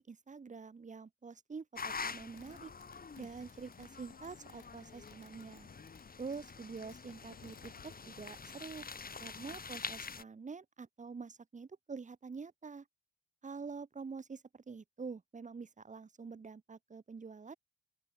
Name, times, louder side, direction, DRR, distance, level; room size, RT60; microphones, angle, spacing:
voice 1, 0.0-2.7 3.2-5.7 6.2-8.8 9.2-12.9 13.4-17.6, right 5 dB, 15° right, 0.7 m, -46 dB
sound 1, 1.8-10.2, left 5 dB, 20° left, 1.1 m, -46 dB
Fireworks, 2.0-10.1, left 10 dB, 55° left, 3.6 m, -65 dB
open air
cardioid pair, 170°, 45 cm